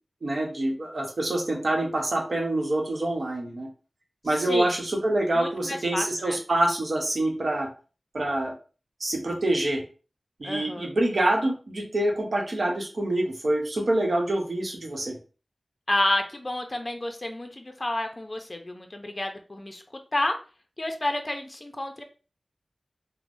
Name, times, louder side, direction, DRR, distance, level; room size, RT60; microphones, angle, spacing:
voice 1, 0.2-3.7 4.2-7.7 8.1-8.5 9.0-9.8 10.4-15.1, right 1 dB, 70° right, 0 dB, 0.8 m, -26 dB
voice 2, 4.3-4.7 5.3-6.4 10.4-10.9 15.9-19.8 20.1-20.4 20.8-22.0, left 1 dB, 35° left, 5 dB, 0.5 m, -30 dB
3.2 x 2.0 x 2.5 m, 0.36 s
wide cardioid pair, 55°, 0 cm